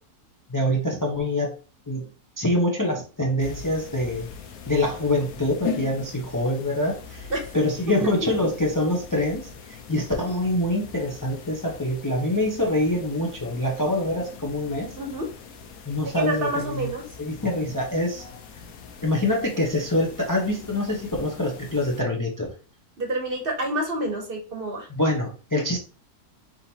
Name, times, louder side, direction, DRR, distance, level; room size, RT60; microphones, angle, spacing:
voice 1, 0.5-1.5 1.9-2.1 2.4-4.3 4.7-15.0 15.8-16.9 17.2-18.3 19.0-22.5 25.0-25.8, left 1 dB, 25° left, -2 dB, 0.4 m, -25 dB
sound 1, 3.4-22.0, left 6 dB, 70° left, 1.2 m, -41 dB
voice 2, 15.0-15.3 16.0-17.0 23.0-24.9, right 1 dB, 40° right, 2 dB, 1.0 m, -28 dB
4.3 x 3.8 x 2.8 m, 0.36 s
omnidirectional pair, 1.7 m